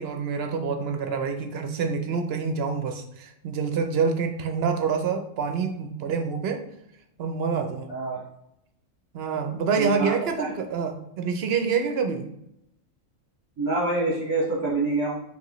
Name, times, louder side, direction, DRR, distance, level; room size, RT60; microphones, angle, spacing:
voice 1, 0.0-6.6 7.2-7.9 9.1-12.3, right 5 dB, 60° right, 6 dB, 0.7 m, -27 dB
voice 2, 7.9-8.2 9.8-10.5 13.6-15.2, right 2 dB, 20° right, -8 dB, 1.1 m, -26 dB
5.3 x 3.2 x 3.0 m, 0.79 s
omnidirectional pair, 1.4 m